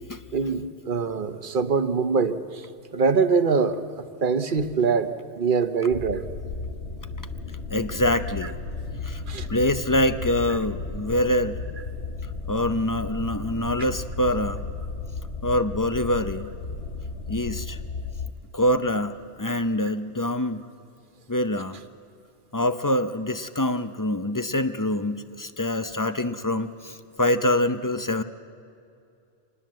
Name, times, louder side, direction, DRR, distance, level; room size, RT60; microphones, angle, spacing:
voice 1, 0.3-2.6 2.9-6.2 9.3-9.5, right 5 dB, 50° right, 10 dB, 1.1 m, -24 dB
sound 1, 5.9-18.3, left 4 dB, 60° left, 1.6 m, -34 dB
voice 2, 7.7-8.5 9.0-9.2 9.5-11.6 12.5-14.6 15.4-16.5 17.3-17.8 18.5-20.6 21.3-21.8 22.5-28.2, left 1 dB, 25° left, 11 dB, 0.5 m, -25 dB
26.5 x 20.0 x 7.6 m, 2.5 s
omnidirectional pair, 1.2 m